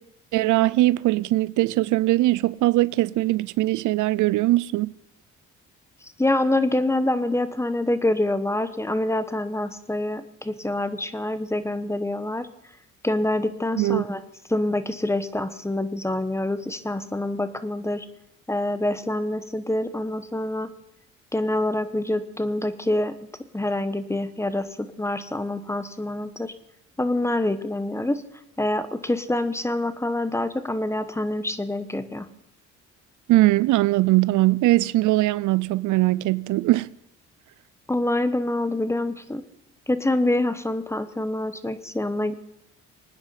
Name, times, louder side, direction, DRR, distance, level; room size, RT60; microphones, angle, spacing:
voice 1, 0.3-4.9 13.8-14.1 33.3-36.9, right 18 dB, 80° right, 0.5 m, -21 dB
voice 2, 6.2-12.5 13.0-14.2 14.5-18.1 18.5-20.7 21.3-23.1 23.5-26.5 27.0-28.2 28.6-32.3 37.9-39.4 39.9-42.3, left 1 dB, 10° left, 1.1 m, -26 dB
24.5 x 9.7 x 5.8 m
cardioid pair, 90°, 30 cm